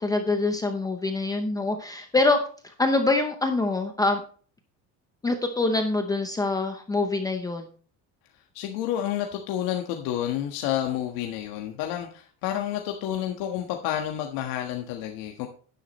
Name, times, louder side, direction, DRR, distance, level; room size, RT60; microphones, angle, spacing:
voice 1, 0.0-2.4 2.6-4.2 5.2-7.7, left 3 dB, 10° left, 5 dB, 0.7 m, -25 dB
voice 2, 8.5-15.5, left 11 dB, 80° left, 3 dB, 1.5 m, -30 dB
11.5 x 10.0 x 3.1 m, 0.42 s
cardioid pair, 180°, 35 cm